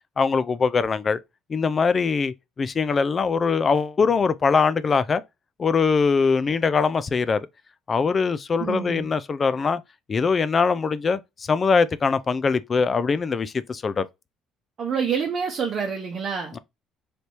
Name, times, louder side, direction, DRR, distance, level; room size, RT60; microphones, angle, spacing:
voice 1, 0.2-1.2 1.5-5.2 5.6-7.5 7.9-9.8 10.1-14.1, left 5 dB, 30° left, 0.4 m, -22 dB
voice 2, 8.6-9.1 14.8-16.6, right 6 dB, 45° right, 0.8 m, -27 dB
3.3 x 2.7 x 4.4 m
cardioid pair, 110°, 0 cm